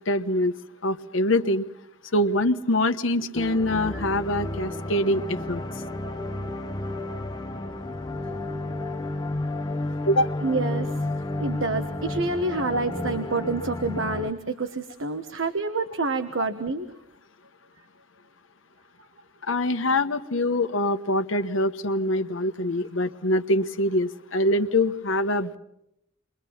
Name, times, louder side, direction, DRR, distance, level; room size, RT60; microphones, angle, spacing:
voice 1, 0.1-0.5 0.8-1.6 2.1-5.6 10.1-10.3 12.7-12.8 19.5-25.6, left 1 dB, 75° left, 8 dB, 1.2 m, -24 dB
sound 1, 3.3-14.3, left 2 dB, 20° left, 0.9 m, -32 dB
voice 2, 10.4-10.9 11.4-16.9, right 3 dB, 75° right, 8 dB, 1.3 m, -28 dB
28.5 x 23.0 x 5.8 m, 0.81 s
head